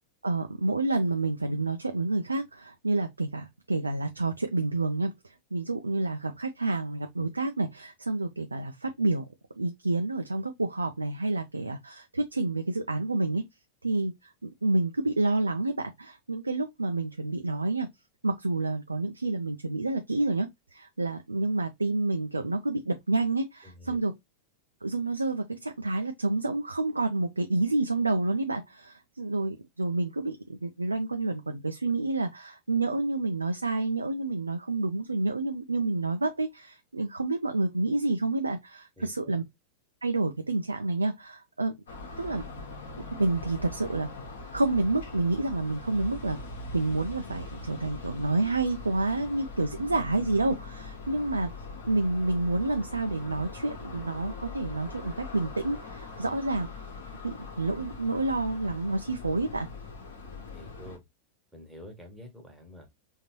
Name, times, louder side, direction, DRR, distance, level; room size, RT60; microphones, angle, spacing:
voice 1, 0.2-5.1 5.5-9.2 9.6-13.4 13.8-17.9 18.2-24.1 24.8-39.4 40.0-41.7 42.2-42.4 43.2-44.1 44.5-46.4 46.7-51.5 51.9-56.7 57.2-59.7, right 2 dB, 80° right, 0.4 m, -29 dB
voice 2, 23.6-24.1 39.0-39.1 56.2-56.3 60.2-61.0 61.5-62.9, left 1 dB, 5° right, 1.3 m, -48 dB
sound 1, 41.9-61.0, left 3 dB, 65° left, 1.2 m, -42 dB
3.6 x 2.7 x 2.9 m
figure-of-eight pair, 90°, 0 cm